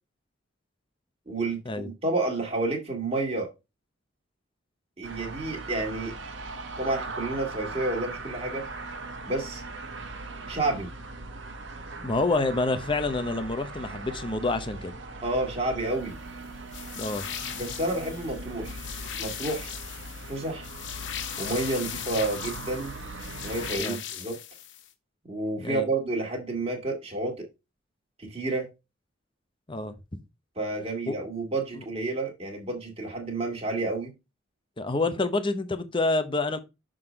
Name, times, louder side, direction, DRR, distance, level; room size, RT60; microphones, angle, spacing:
voice 1, 1.3-3.5 5.0-6.1 6.8-8.7 9.3-9.6 10.5-10.9 15.2-16.1 17.5-18.8 19.2-19.7 20.3-20.7 21.4-22.9 23.4-24.4 25.3-27.5 28.2-28.7 30.6-34.1, right 2 dB, 30° right, 1.8 m, -30 dB
sound 1, 5.0-23.8, right 2 dB, 65° right, 1.1 m, -40 dB
voice 2, 12.0-15.0 17.0-17.3 23.6-24.0 25.6-25.9 29.7-30.2 31.1-31.2 31.7-31.8 34.8-36.6, left 2 dB, 25° left, 0.8 m, -28 dB
sound 2, 16.7-24.9, left 9 dB, 65° left, 0.9 m, -38 dB
6.4 x 3.8 x 5.0 m
head